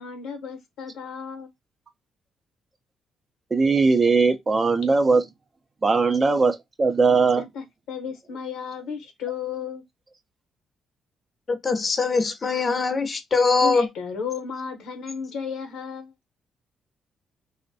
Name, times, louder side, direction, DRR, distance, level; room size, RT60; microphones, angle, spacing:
voice 1, 0.0-1.5 7.4-9.8 13.6-16.1, left 6 dB, 80° left, 0.8 m, -34 dB
voice 2, 3.5-5.2 5.8-7.4, right 4 dB, 30° right, 0.4 m, -19 dB
voice 3, 11.5-13.9, left 4 dB, 35° left, 0.5 m, -22 dB
2.5 x 2.1 x 2.5 m
cardioid pair, 90°, 0 cm